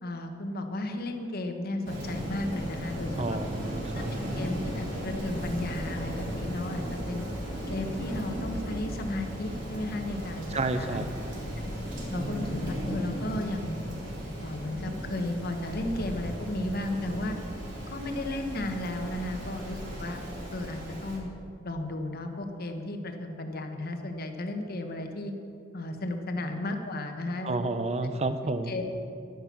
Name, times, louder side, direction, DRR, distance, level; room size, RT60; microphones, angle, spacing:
voice 1, 0.0-3.4 3.9-7.2 7.7-10.5 10.8-11.1 12.1-13.8 14.4-17.4 17.9-20.2 20.5-21.3 21.6-25.3 25.7-27.6 28.7-28.9, left 1 dB, 55° left, 5 dB, 1.2 m, -34 dB
Rain, 1.8-21.2, equal, 65° right, 3.4 m, -36 dB
voice 2, 3.2-4.1 10.5-11.1 27.4-28.7, right 2 dB, 35° right, 10 dB, 0.7 m, -30 dB
11.0 x 10.5 x 5.9 m, 2.6 s
head